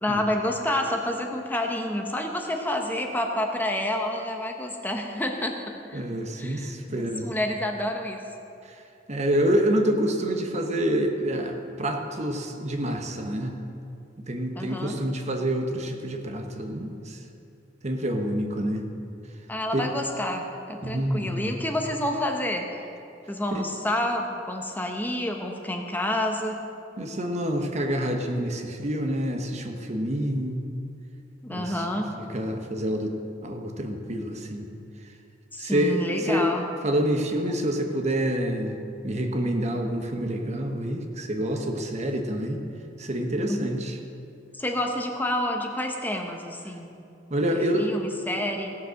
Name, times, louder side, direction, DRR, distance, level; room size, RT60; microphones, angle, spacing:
voice 1, 0.0-6.0 6.4-8.3 14.6-15.0 19.5-22.8 23.3-26.6 31.4-32.1 35.5-36.6 43.5-43.6 44.5-47.0 47.8-48.8, left 1 dB, 10° left, 3 dB, 0.9 m, -29 dB
voice 2, 5.9-7.3 8.6-8.8 9.1-13.6 14.2-17.2 17.8-18.9 19.7-19.8 20.8-21.5 23.5-23.6 27.0-30.6 31.5-31.9 32.3-33.2 33.4-34.7 35.6-36.5 36.8-38.8 39.0-42.6 43.0-43.9 47.3-47.9, right 1 dB, 40° right, 4 dB, 1.1 m, -27 dB
16.5 x 7.3 x 6.4 m, 2.5 s
head